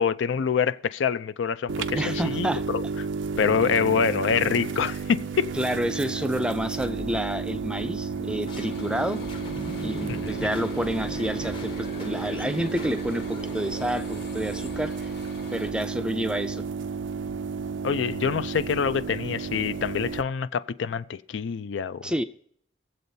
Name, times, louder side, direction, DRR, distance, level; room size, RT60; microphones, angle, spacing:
voice 1, 0.0-2.8 3.4-5.5 10.1-10.5 17.8-22.1, left 6 dB, 90° left, 0.4 m, -26 dB
sound 1, 1.7-20.2, right 5 dB, 90° right, 0.4 m, -32 dB
voice 2, 1.9-2.6 5.5-9.2 9.8-15.1 15.5-16.6 22.0-22.2, equal, 5° right, 0.3 m, -29 dB
sound 2, 6.8-15.5, left 1 dB, 25° left, 0.7 m, -41 dB
sound 3, 8.5-15.7, left 1 dB, 65° left, 1.5 m, -44 dB
23.0 x 7.7 x 2.7 m
head